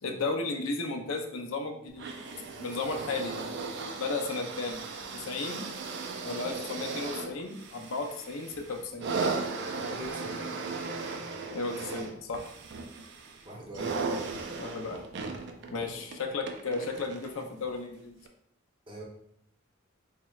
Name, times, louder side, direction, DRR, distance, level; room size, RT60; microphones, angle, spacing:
voice 1, 0.0-2.1 2.6-3.5 4.0-4.8 5.1-5.7 6.2-9.2 11.5-12.5 14.6-15.0 15.7-18.1, left 3 dB, 70° left, 3 dB, 0.5 m, -34 dB
sound 1, 2.0-17.4 18.3-18.4, right 4 dB, 55° right, 0.4 m, -37 dB
voice 2, 9.8-10.5 13.4-14.0 18.9-19.0, right 1 dB, 25° right, -2 dB, 0.7 m, -43 dB
4.2 x 3.1 x 2.3 m, 0.71 s
head